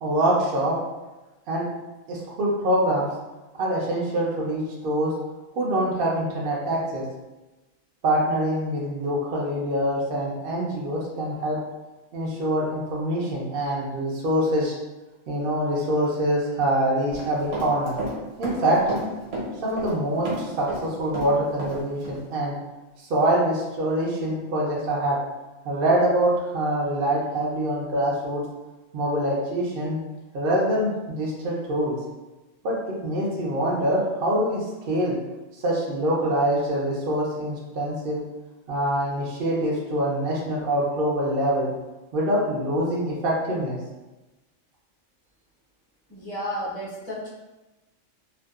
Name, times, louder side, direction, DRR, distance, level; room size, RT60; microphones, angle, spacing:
voice 1, 0.0-0.7 1.5-1.6 2.1-3.1 3.6-5.1 5.6-7.0 8.0-11.6 12.1-14.7 15.3-18.0 18.4-18.8 19.6-22.5 23.0-25.2 25.6-28.4 28.9-30.0 30.3-32.0 32.6-32.8 33.0-35.2 35.6-38.2 38.7-41.7 42.1-43.8, right 1 dB, 60° right, -4 dB, 0.6 m, -24 dB
Run, 17.1-18.2 18.4-20.0 20.3-21.8 22.0-22.2, right 1 dB, 75° right, 1.2 m, -31 dB
voice 2, 46.1-47.3, equal, 40° left, -10 dB, 0.7 m, -32 dB
2.6 x 2.2 x 2.3 m, 1.1 s
omnidirectional pair, 1.3 m